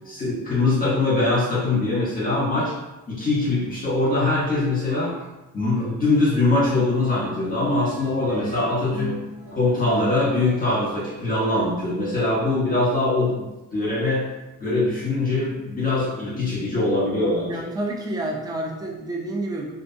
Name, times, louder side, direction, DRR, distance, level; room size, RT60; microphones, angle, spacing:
voice 1, 0.0-2.7 3.1-5.1 5.5-9.2 9.5-14.3 14.6-17.7, left 2 dB, 25° left, -8 dB, 1.0 m, -22 dB
sound 1, 6.3-11.4, right 1 dB, 75° right, 1.4 m, -37 dB
voice 2, 17.5-19.7, right 1 dB, 10° right, 0 dB, 0.4 m, -29 dB
2.6 x 2.3 x 2.7 m, 1.0 s
cardioid pair, 105°, 33 cm